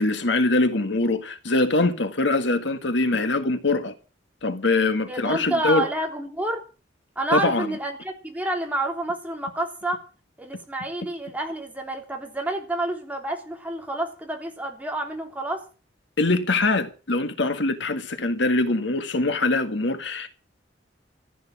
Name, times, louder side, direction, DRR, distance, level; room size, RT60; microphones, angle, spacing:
voice 1, 0.0-3.9 4.4-5.9 7.3-7.7 16.2-20.3, left 2 dB, 65° left, 1.7 m, -23 dB
voice 2, 5.1-6.6 7.1-10.0 10.4-15.6, right 1 dB, 10° right, 3.3 m, -29 dB
15.0 x 9.5 x 7.4 m
head